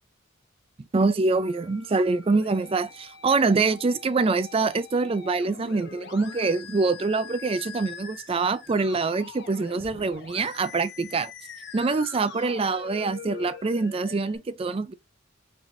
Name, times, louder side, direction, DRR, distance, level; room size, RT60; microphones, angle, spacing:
voice 1, 0.9-11.3 11.7-14.9, right 3 dB, 25° right, 0.3 m, -25 dB
Musical instrument, 1.3-14.4, left 6 dB, 55° left, 1.0 m, -43 dB
4.6 x 3.6 x 2.5 m
head